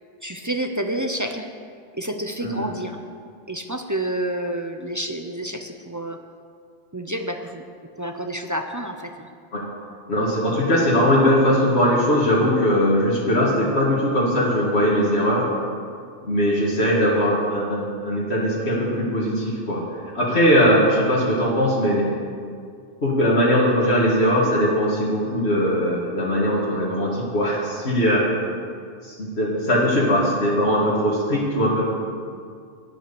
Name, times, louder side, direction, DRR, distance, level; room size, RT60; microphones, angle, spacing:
voice 1, 0.2-1.5 1.9-3.0 3.5-6.2 6.9-7.6 8.0-9.3, right 1 dB, 20° right, 5 dB, 0.6 m, -29 dB
voice 2, 10.1-15.5 16.2-19.8 20.1-22.1 23.0-28.3 29.0-31.9, equal, 85° left, -5 dB, 2.3 m, -20 dB
11.0 x 9.3 x 7.0 m, 2.2 s
omnidirectional pair, 1.1 m